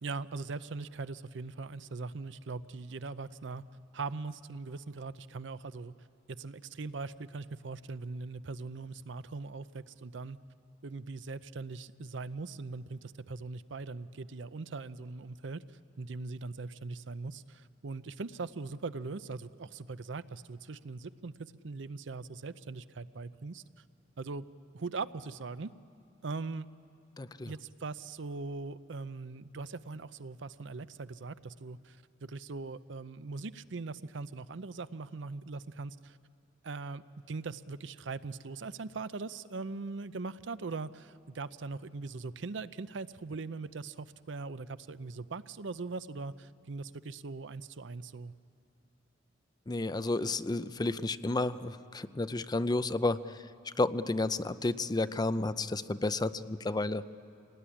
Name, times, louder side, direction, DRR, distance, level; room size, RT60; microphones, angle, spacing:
voice 1, 0.0-3.6 3.9-5.9 6.3-10.4 10.8-15.6 16.0-23.6 24.2-24.5 24.7-25.7 26.2-26.7 27.5-36.2 36.6-48.3, right 3 dB, 70° right, 14 dB, 0.6 m, -40 dB
voice 2, 27.2-27.5 49.7-57.0, left 2 dB, 20° left, 13 dB, 0.5 m, -31 dB
26.5 x 18.5 x 10.0 m, 2.5 s
head